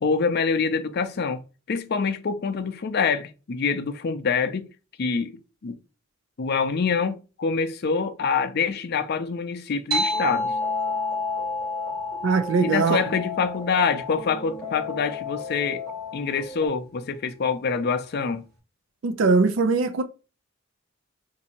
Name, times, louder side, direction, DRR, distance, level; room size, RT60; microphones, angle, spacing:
voice 1, 0.0-1.4 1.7-4.7 5.0-5.8 6.4-10.5 12.6-15.8 16.1-18.4, left 5 dB, 55° left, 0.4 m, -25 dB
sound 1, 9.9-14.9, left 1 dB, 50° right, 1.2 m, -30 dB
sound 2, 10.0-16.7, left 6 dB, 15° left, 0.8 m, -36 dB
voice 2, 12.2-13.0 19.0-20.0, right 4 dB, 70° right, 0.4 m, -21 dB
2.7 x 2.6 x 4.1 m
head